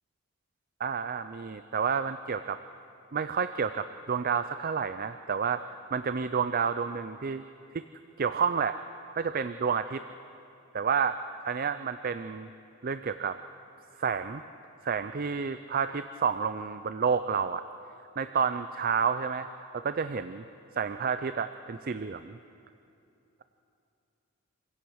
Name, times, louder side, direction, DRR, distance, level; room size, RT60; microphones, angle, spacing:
voice 1, 0.8-2.6 3.1-5.6 5.9-7.4 7.7-7.8 8.2-8.8 9.1-10.0 10.7-11.2 11.5-12.5 12.8-13.4 14.0-14.4 14.8-17.6 18.2-19.5 19.7-20.4 20.7-22.4, right 6 dB, 40° right, 11 dB, 0.4 m, -30 dB
26.5 x 16.5 x 6.4 m, 2.7 s
head